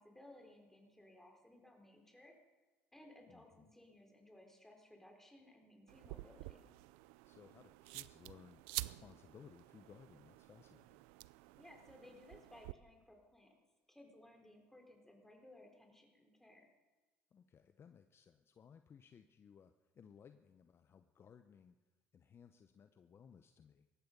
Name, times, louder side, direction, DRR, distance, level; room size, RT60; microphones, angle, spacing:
voice 1, 0.0-2.4 2.9-6.7 11.6-13.6 13.9-16.7, left 1 dB, 5° left, 2 dB, 4.3 m, -60 dB
voice 2, 3.3-3.7 7.2-11.0 17.3-21.8 22.1-23.9, left 7 dB, 40° left, 9 dB, 0.8 m, -61 dB
sound 1, 5.9-12.7, right 21 dB, 80° right, 0.4 m, -50 dB
18.0 x 14.5 x 5.4 m, 1.2 s
supercardioid pair, 80°, 6 cm